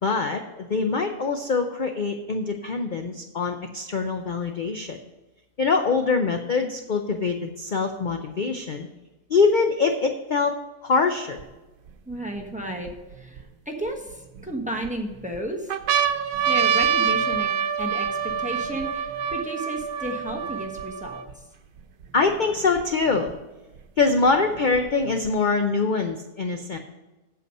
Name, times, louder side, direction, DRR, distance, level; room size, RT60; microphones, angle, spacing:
voice 1, 0.0-5.0 5.6-8.9 9.3-10.5 10.8-11.4 22.1-23.3 24.0-26.8, left 4 dB, 50° left, 5 dB, 0.6 m, -24 dB
sound 1, 11.4-11.5 12.1-13.4 14.1-14.9 15.3-15.4 15.7-21.3 22.0-22.1 22.3-23.3 24.3-25.3, right 8 dB, 85° right, 1.3 m, -26 dB
voice 2, 12.1-12.9 13.1-16.0 16.5-21.2, right 1 dB, 5° right, 2 dB, 1.0 m, -33 dB
8.3 x 7.7 x 5.4 m, 1.1 s
omnidirectional pair, 1.6 m